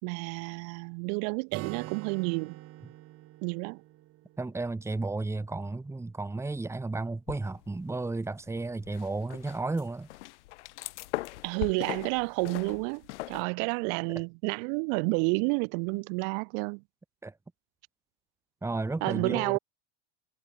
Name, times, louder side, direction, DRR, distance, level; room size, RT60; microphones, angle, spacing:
voice 1, 0.0-2.6 3.4-3.8 11.4-16.8 19.0-19.6, right 40 dB or more, 60° right, 5.0 m, -30 dB
Acoustic guitar, 1.5-5.2, right 16 dB, 45° right, 4.8 m, -45 dB
voice 2, 4.4-10.1 17.2-17.3 18.6-19.6, right 3 dB, 10° right, 3.4 m, -33 dB
sound 1, 7.3-8.0 8.3-13.4, left 19 dB, 85° left, 3.8 m, -40 dB
supercardioid pair, 145°, 34 cm